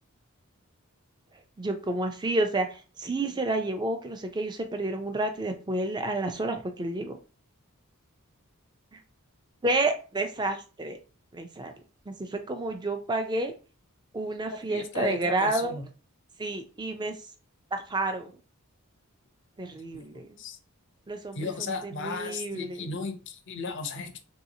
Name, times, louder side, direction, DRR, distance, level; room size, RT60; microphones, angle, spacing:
voice 1, 1.6-7.2 9.6-11.0 11.3-11.7 12.1-13.5 14.1-15.8 16.4-17.2 17.7-18.3 19.6-20.4 21.1-22.8, right 2 dB, 20° right, 6 dB, 0.4 m, -30 dB
voice 2, 14.7-15.9 19.9-20.1 20.4-20.6 21.3-24.2, left 4 dB, 55° left, 7 dB, 0.5 m, -35 dB
3.1 x 2.7 x 2.7 m, 0.35 s
head